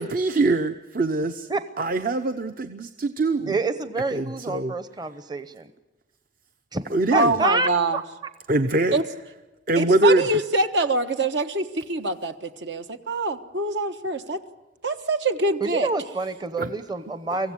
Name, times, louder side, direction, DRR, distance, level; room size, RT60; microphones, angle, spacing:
voice 1, 0.0-1.5 1.8-3.6 4.1-4.7 6.9-7.3 8.5-9.0 9.7-10.2 16.6-16.7, right 2 dB, 50° right, 9 dB, 0.8 m, -23 dB
voice 2, 3.5-5.7 6.7-6.8 7.1-8.0 15.6-17.5, right 3 dB, 25° right, 11 dB, 0.8 m, -27 dB
voice 3, 7.1-8.0 8.9-9.0 9.8-14.4 14.8-15.9, right 2 dB, 75° right, 8 dB, 1.3 m, -24 dB
24.5 x 15.5 x 9.7 m, 1.1 s
head